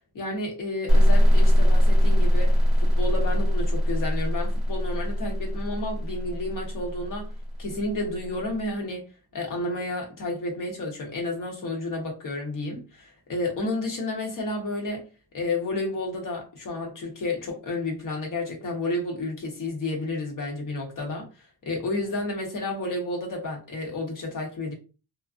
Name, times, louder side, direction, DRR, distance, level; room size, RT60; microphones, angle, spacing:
voice 1, 0.1-7.3 7.6-9.0 9.3-15.1 15.3-21.3 21.6-24.7, left 2 dB, 65° left, 1.1 m, -31 dB
sound 1, 0.9-8.4, equal, ahead, 0.8 m, -21 dB
2.4 x 2.4 x 2.5 m
cardioid pair, 115°, 35 cm